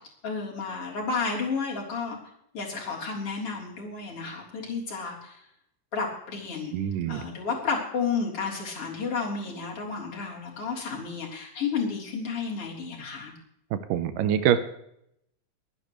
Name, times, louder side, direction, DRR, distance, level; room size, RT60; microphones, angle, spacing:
voice 1, 0.2-2.2 2.5-5.4 5.9-6.7 7.1-13.3, left 5 dB, 45° left, -2 dB, 4.3 m, -31 dB
voice 2, 6.7-7.2 13.7-14.6, right 10 dB, 85° right, 11 dB, 2.4 m, -25 dB
24.0 x 10.0 x 3.1 m, 0.75 s
omnidirectional pair, 3.8 m